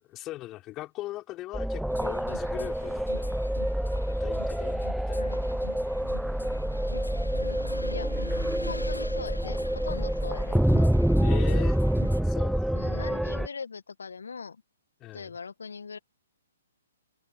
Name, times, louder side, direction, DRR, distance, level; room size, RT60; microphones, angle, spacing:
voice 1, 0.1-3.3 4.0-5.3 11.2-11.8 12.2-12.8 15.0-15.3, left 16 dB, 25° left, 4.9 m, -39 dB
sound 1, 1.5-13.5, equal, ahead, 0.5 m, -27 dB
sound 2, 1.9-12.2, left 2 dB, 90° left, 2.3 m, -44 dB
voice 2, 5.1-5.5 6.9-7.1 7.3-8.3 8.7-10.9 12.7-14.6 15.1-16.0, left 5 dB, 70° left, 1.9 m, -41 dB
sound 3, 6.9-12.8, right 6 dB, 65° right, 7.0 m, -57 dB
open air
figure-of-eight pair, 125°, 0 cm